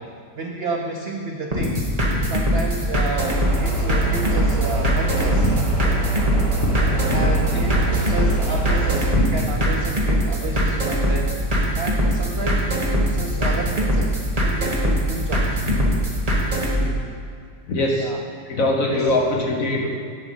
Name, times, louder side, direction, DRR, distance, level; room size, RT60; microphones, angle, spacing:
voice 1, 0.3-1.9 2.3-5.5 7.1-11.4 11.8-15.6 18.0-18.2 18.9-19.1, right 2 dB, 80° right, 2 dB, 0.5 m, -31 dB
sound 1, 1.5-16.8, equal, 25° right, 1.3 m, -22 dB
sound 2, 3.2-9.1, right 3 dB, 50° right, 1.4 m, -25 dB
voice 2, 7.1-7.7 9.1-9.5 13.1-13.2 15.6-15.8 16.8-16.9 17.7-18.1 18.5-19.9, left 2 dB, 55° left, 0 dB, 1.4 m, -23 dB
9.8 x 6.0 x 5.6 m, 2.1 s
omnidirectional pair, 1.9 m